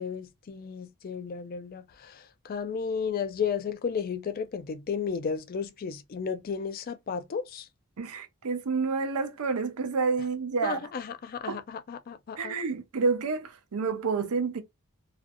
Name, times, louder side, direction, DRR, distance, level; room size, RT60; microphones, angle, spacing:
voice 1, 0.0-7.7 10.6-12.5, left 6 dB, 40° left, 0.3 m, -33 dB
voice 2, 8.0-10.8 11.5-11.6 12.4-14.6, right 4 dB, 85° right, 0.6 m, -29 dB
2.5 x 2.3 x 2.5 m
head